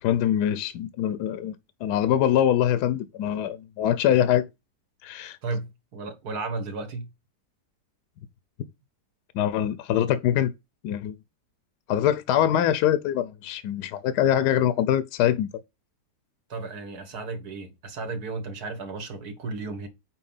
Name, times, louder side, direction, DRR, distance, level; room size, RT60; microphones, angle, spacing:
voice 1, 0.0-1.5 1.8-4.5 5.0-5.4 9.3-10.5 10.8-11.2 11.9-15.5, left 10 dB, 75° left, 1.2 m, -23 dB
voice 2, 5.4-7.1 16.5-19.9, right 3 dB, 65° right, 1.8 m, -34 dB
5.7 x 4.6 x 5.4 m
omnidirectional pair, 1.8 m